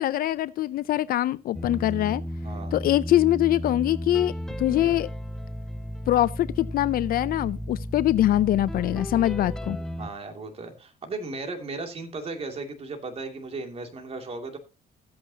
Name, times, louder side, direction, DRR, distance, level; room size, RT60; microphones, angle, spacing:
voice 1, 0.0-2.2 2.7-4.3 4.6-5.1 6.1-9.8, left 14 dB, 60° left, 0.5 m, -23 dB
sound 1, 1.5-10.1, equal, 5° left, 0.6 m, -34 dB
voice 2, 2.4-2.7 4.7-5.0 10.0-14.6, right 3 dB, 35° right, 2.5 m, -36 dB
14.5 x 8.6 x 2.8 m
cardioid pair, 110°, 17 cm